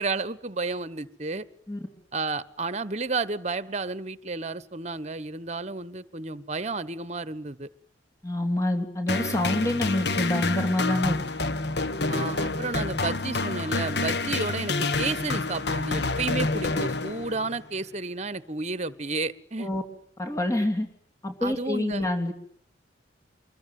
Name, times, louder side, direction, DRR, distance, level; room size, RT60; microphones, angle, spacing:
voice 1, 0.0-1.4 2.1-7.7 9.7-9.8 12.1-19.7 21.4-22.0, right 3 dB, 35° right, 16 dB, 1.2 m, -32 dB
voice 2, 8.2-11.2 19.6-19.8 20.2-20.9 21.2-22.3, left 1 dB, 15° left, 4 dB, 3.3 m, -26 dB
sound 1, 9.1-17.6, left 3 dB, 60° left, 1.5 m, -28 dB
25.0 x 22.5 x 9.4 m, 0.62 s
head